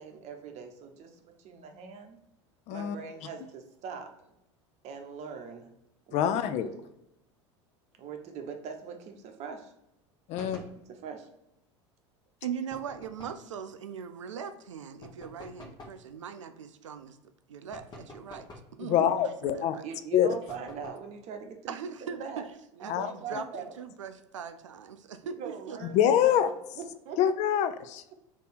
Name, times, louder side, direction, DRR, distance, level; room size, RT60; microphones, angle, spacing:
voice 1, 0.0-2.2 2.7-4.3 4.8-5.7 6.1-6.3 6.6-6.8 8.0-9.7 10.3-11.3 18.9-19.0 19.8-22.4 22.7-23.7 25.4-26.4 26.7-27.2, right 6 dB, 45° right, 4 dB, 0.8 m, -42 dB
voice 2, 6.1-6.7 10.3-10.6 18.8-19.7 20.1-20.3 22.9-23.1 23.3-23.4 25.9-26.5 27.2-28.1, left 10 dB, 45° left, 11 dB, 0.4 m, -25 dB
sound 1, 10.3-10.8 12.7-13.5 15.0-16.0 17.7-18.8 20.5-21.1, left 1 dB, 25° left, 1.1 m, -48 dB
voice 3, 12.4-17.2 17.5-18.5 18.8-19.8 21.7-22.5 22.8-23.4 23.8-25.8, right 7 dB, 85° right, 10 dB, 0.4 m, -40 dB
3.4 x 2.7 x 4.2 m, 0.85 s
hypercardioid pair, 80°, 15 cm